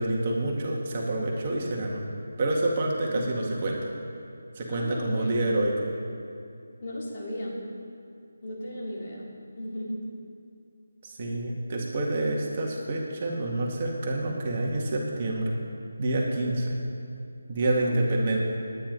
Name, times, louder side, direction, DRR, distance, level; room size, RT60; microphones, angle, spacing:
voice 1, 0.0-2.0 2.4-3.8 4.5-5.7 11.0-15.6 16.0-16.8 17.5-18.4, right 2 dB, 35° right, -2 dB, 2.0 m, -27 dB
voice 2, 3.1-3.5 4.7-5.4 6.8-7.6 8.4-10.1 17.6-18.3, equal, 40° left, -5 dB, 3.4 m, -36 dB
20.0 x 9.7 x 4.0 m, 2.5 s
figure-of-eight pair, 165°, 0 cm